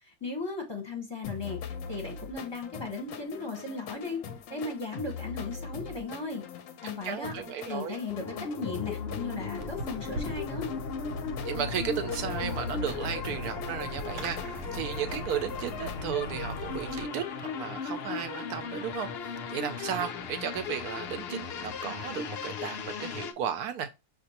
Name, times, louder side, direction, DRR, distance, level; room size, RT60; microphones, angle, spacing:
voice 1, 0.0-4.2 4.5-6.4 6.8-7.4 7.7-10.7, left 3 dB, 20° left, 0.8 m, -36 dB
sound 1, 1.2-16.0, left 6 dB, 65° left, 0.9 m, -42 dB
voice 2, 7.0-8.0 11.4-24.0, right 9 dB, 75° right, 1.0 m, -35 dB
sound 2, 8.1-23.3, left 5 dB, 85° left, 0.5 m, -37 dB
Fireworks, 9.6-17.1, equal, 90° right, 1.3 m, -39 dB
6.2 x 2.5 x 2.8 m
omnidirectional pair, 1.7 m